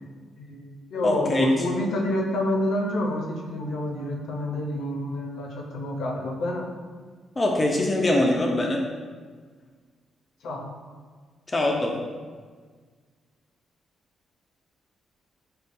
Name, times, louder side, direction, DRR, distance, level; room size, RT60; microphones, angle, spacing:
voice 1, 0.4-6.7 10.4-10.7, left 1 dB, 75° left, 0 dB, 0.5 m, -28 dB
voice 2, 1.0-1.5 7.4-8.8 11.5-11.9, left 1 dB, 20° left, 0 dB, 0.4 m, -23 dB
5.0 x 2.3 x 2.5 m, 1.5 s
cardioid pair, 110°, 0 cm